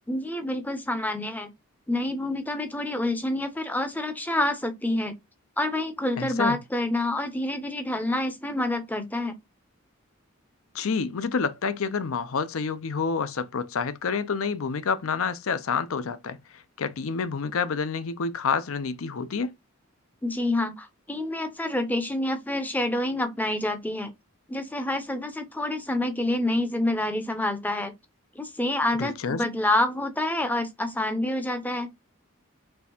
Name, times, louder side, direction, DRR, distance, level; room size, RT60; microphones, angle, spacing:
voice 1, 0.1-1.5 1.9-5.1 5.6-9.4 20.2-24.1 24.5-27.9 28.4-31.9, left 1 dB, 10° left, 0.5 m, -27 dB
voice 2, 6.2-6.6 10.7-19.5 29.0-29.4, left 5 dB, 75° left, 0.5 m, -28 dB
4.5 x 3.3 x 2.8 m
head